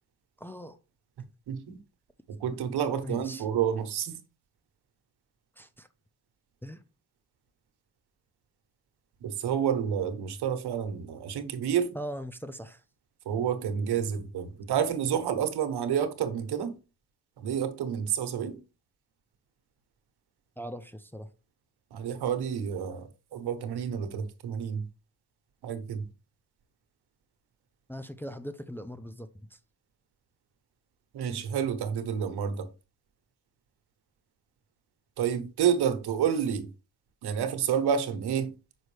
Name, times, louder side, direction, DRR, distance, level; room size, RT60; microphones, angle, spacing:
voice 1, 0.4-0.8 3.0-3.4 5.6-5.9 6.6-6.8 11.9-12.8 20.6-21.3 27.9-29.6, equal, 5° left, 0.5 m, -40 dB
voice 2, 1.5-1.8 2.4-4.2 9.2-11.9 13.2-16.8 17.4-18.6 21.9-24.8 25.6-26.0 31.1-32.7 35.2-36.7 37.2-38.5, right 8 dB, 80° right, 1.1 m, -29 dB
6.2 x 5.3 x 3.3 m
cardioid pair, 100°, 38 cm